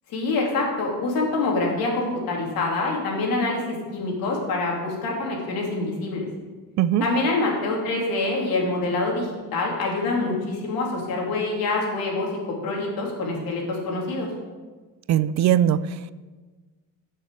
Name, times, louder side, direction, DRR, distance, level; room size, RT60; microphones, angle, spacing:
voice 1, 0.1-6.3 7.0-12.3 12.6-14.3, left 3 dB, 85° left, -1 dB, 3.2 m, -26 dB
voice 2, 15.1-16.1, right 10 dB, 55° right, 16 dB, 0.5 m, -20 dB
14.0 x 6.8 x 4.9 m, 1.3 s
cardioid pair, 145°, 34 cm